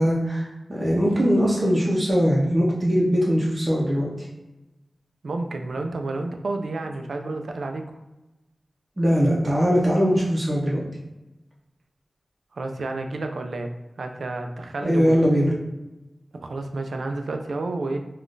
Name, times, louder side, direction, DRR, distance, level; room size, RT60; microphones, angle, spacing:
voice 1, 0.0-4.1 9.0-10.8 14.8-15.5, equal, 30° right, -5 dB, 0.7 m, -21 dB
voice 2, 5.2-8.0 12.5-15.1 15.4-15.5 16.4-18.0, right 2 dB, 80° right, 5 dB, 0.3 m, -30 dB
3.6 x 2.3 x 2.5 m, 1.0 s
wide cardioid pair, 65°, 0 cm